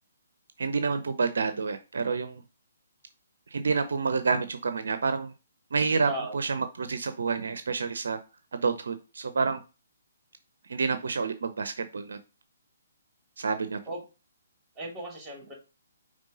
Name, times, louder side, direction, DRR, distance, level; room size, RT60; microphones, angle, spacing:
voice 1, 0.6-2.4 3.5-5.3 5.7-8.2 8.5-9.6 10.7-12.2 13.4-13.8, right 4 dB, 70° right, 10 dB, 0.6 m, -28 dB
voice 2, 14.8-15.5, right 1 dB, 15° right, -1 dB, 3.2 m, -36 dB
5.3 x 3.3 x 5.3 m, 0.32 s
figure-of-eight pair, 135°, 0 cm